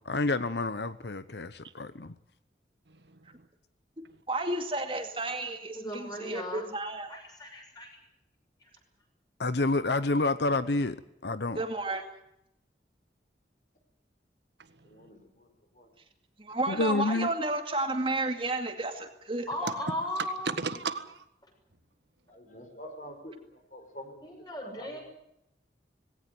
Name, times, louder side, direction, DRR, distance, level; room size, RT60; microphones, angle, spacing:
voice 1, 0.0-2.1 9.4-11.0 11.2-11.6 16.7-17.3, left 2 dB, 75° left, 0.9 m, -28 dB
voice 2, 2.9-3.5 14.6-15.1 19.6-21.2, right 4 dB, 85° right, 1.7 m, -36 dB
voice 3, 4.3-7.2 11.6-12.0 16.4-19.7, right 2 dB, 30° right, 2.2 m, -32 dB
voice 4, 5.7-6.7 7.1-8.0 19.5-20.5 24.2-25.0, equal, 25° left, 6.8 m, -36 dB
voice 5, 14.8-15.9 22.3-25.0, equal, 45° left, 4.5 m, -47 dB
19.5 x 17.5 x 9.3 m
head